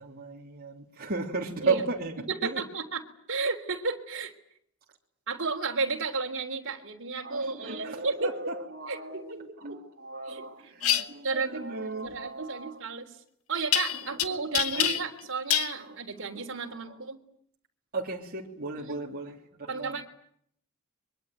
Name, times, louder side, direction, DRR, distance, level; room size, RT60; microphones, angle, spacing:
voice 1, 0.0-2.6 7.2-12.8 13.9-15.1 15.7-16.0 16.3-16.8 17.9-20.0, right 3 dB, 45° right, 3.1 m, -36 dB
voice 2, 2.3-3.0 3.3-4.3 5.3-8.3 8.9-9.4 9.7-9.8 10.3-10.4 11.2-11.6 12.0-13.2 13.5-17.2 18.8-19.0 19.7-20.0, right 4 dB, 60° right, 3.5 m, -33 dB
sound 1, 10.8-11.0 13.7-14.2 14.5-15.2 15.5-15.7, left 12 dB, 70° left, 1.8 m, -26 dB
24.0 x 23.5 x 9.2 m
head